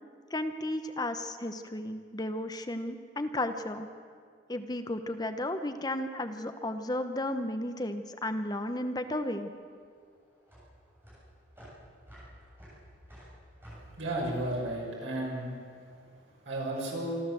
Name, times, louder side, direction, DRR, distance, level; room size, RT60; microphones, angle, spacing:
voice 1, 0.3-3.9 4.5-9.5, left 1 dB, 20° left, 8 dB, 0.8 m, -33 dB
sound 1, 9.2-15.7, equal, 10° right, 7.8 m, -52 dB
voice 2, 14.0-15.5 16.5-17.2, right 1 dB, 80° right, -3 dB, 6.2 m, -33 dB
26.5 x 12.5 x 7.7 m, 2.1 s
head